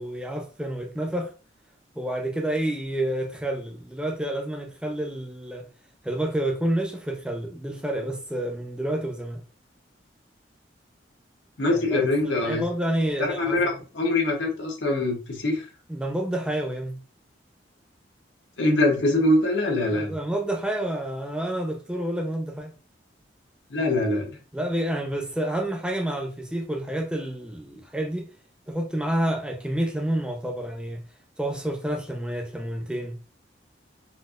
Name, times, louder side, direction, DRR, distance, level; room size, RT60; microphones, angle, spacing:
voice 1, 0.0-1.3 2.0-5.7 6.0-9.4 11.6-13.8 15.9-17.0 19.9-22.8 24.5-28.3 28.7-31.0 31.4-33.1, right 1 dB, 5° right, 0.6 m, -29 dB
voice 2, 11.6-12.6 13.2-15.7 18.6-20.1 23.7-24.3, left 2 dB, 80° left, 1.0 m, -23 dB
4.1 x 2.6 x 2.4 m
head